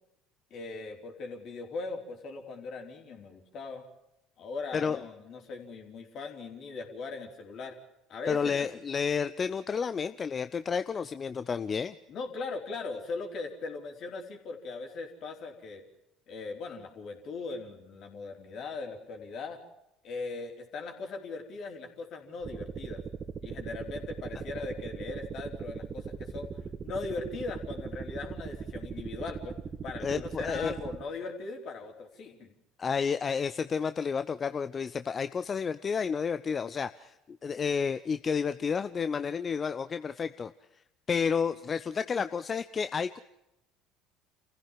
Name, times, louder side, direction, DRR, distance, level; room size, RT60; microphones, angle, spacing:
voice 1, 0.5-3.8 4.4-7.8 8.1-8.7 12.1-15.8 16.3-19.6 20.0-23.0 23.4-26.5 26.8-29.5 29.8-32.5, left 4 dB, 55° left, 3 dB, 4.3 m, -39 dB
voice 2, 8.3-12.0 30.0-30.7 32.8-40.5 41.1-43.2, left 6 dB, 35° left, 12 dB, 0.7 m, -31 dB
sound 1, 22.4-31.0, right 6 dB, 35° right, 1.6 m, -39 dB
28.0 x 15.5 x 7.5 m, 0.87 s
hypercardioid pair, 65°, 0 cm